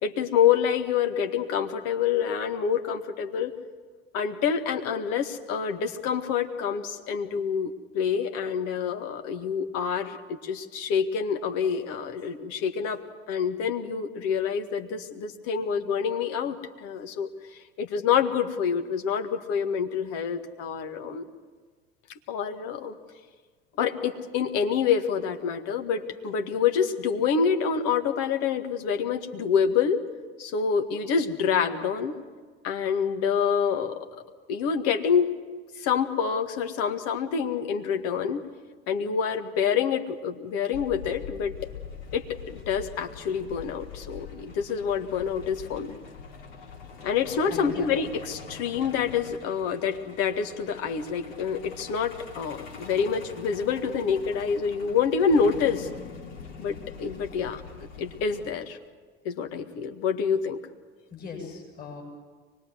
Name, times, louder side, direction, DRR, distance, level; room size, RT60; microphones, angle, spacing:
voice 1, 0.0-3.5 4.1-13.0 13.3-17.3 17.8-21.2 22.3-22.9 23.8-30.0 30.4-32.2 32.6-34.1 34.5-35.3 35.8-38.4 38.9-41.5 42.1-46.0 47.0-55.9 56.6-57.6 58.0-58.8 59.3-60.6, left 7 dB, 55° left, 6 dB, 1.8 m, -27 dB
Truck, 40.7-58.5, left 6 dB, 70° left, 3.1 m, -44 dB
voice 2, 47.5-47.9 61.1-62.0, left 5 dB, 30° left, 0 dB, 7.3 m, -39 dB
24.0 x 21.0 x 7.9 m, 1.5 s
figure-of-eight pair, 65°, 30 cm